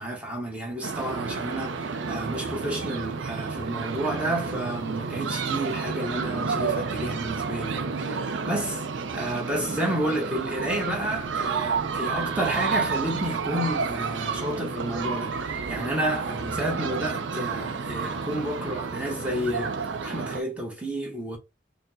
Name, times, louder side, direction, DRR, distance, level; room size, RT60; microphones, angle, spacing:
voice 1, 0.0-8.8 9.1-21.4, right 1 dB, 5° right, 0.9 m, -31 dB
sound 1, 0.8-20.4, right 5 dB, 80° right, 0.4 m, -30 dB
4.3 x 2.0 x 2.6 m
head